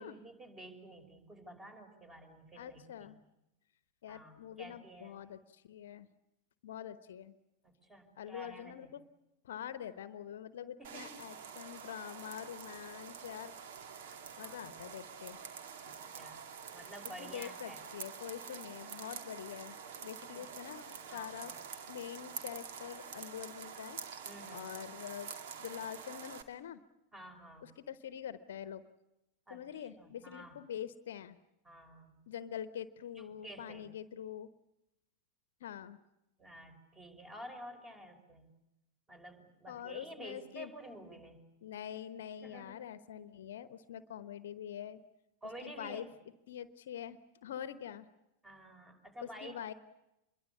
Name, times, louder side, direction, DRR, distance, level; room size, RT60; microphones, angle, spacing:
voice 1, 0.0-3.2 4.1-5.2 7.6-8.9 10.8-11.2 14.1-14.7 15.8-16.4 16.7-17.8 20.2-20.5 21.1-21.4 24.3-24.7 27.1-27.7 29.5-30.6 31.6-32.2 33.2-33.9 36.4-38.5 39.1-41.4 42.4-42.8 45.4-46.2 48.4-49.5, right 1 dB, 15° right, 8 dB, 5.4 m, -51 dB
voice 2, 2.6-3.2 4.0-6.1 6.6-7.3 8.2-9.0 9.4-13.5 14.4-15.4 17.2-19.8 20.0-21.5 21.9-24.0 24.5-25.3 25.6-26.8 27.6-28.8 29.5-31.4 32.3-34.5 35.6-36.0 39.7-40.7 41.6-45.0 45.6-46.1 46.5-48.1 49.2-49.7, left 9 dB, 60° left, 14 dB, 1.0 m, -45 dB
sound 1, 10.8-26.4, right 7 dB, 55° right, 2.3 m, -47 dB
26.5 x 22.5 x 8.4 m, 0.90 s
figure-of-eight pair, 90°, 0 cm